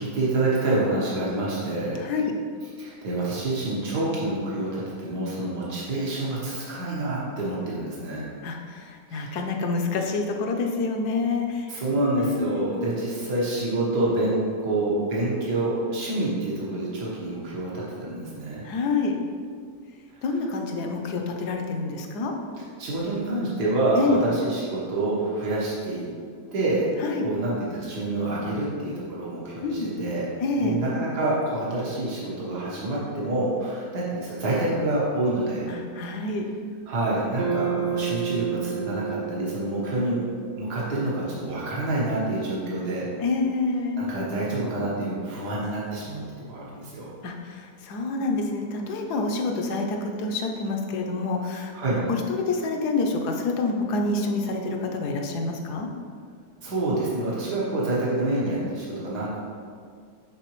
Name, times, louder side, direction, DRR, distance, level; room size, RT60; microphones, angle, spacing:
voice 1, 0.0-2.0 2.6-8.3 9.1-9.4 11.7-18.6 22.8-26.1 26.5-26.9 27.2-30.3 30.5-35.7 36.9-40.2 40.5-43.1 44.0-46.2 46.5-47.1 51.7-52.0 56.6-59.4, right 2 dB, 85° right, -6 dB, 1.8 m, -27 dB
voice 2, 2.0-2.3 8.4-11.7 12.2-12.7 18.6-19.1 20.2-22.3 23.9-24.2 27.0-27.3 29.6-29.9 30.4-30.8 35.7-36.5 43.2-44.0 47.2-52.0 52.3-55.9, left 3 dB, 80° left, 3 dB, 1.3 m, -27 dB
sound 1, 37.4-41.7, right 7 dB, 55° right, 0.5 m, -31 dB
9.9 x 3.9 x 3.1 m, 2.1 s
omnidirectional pair, 1.7 m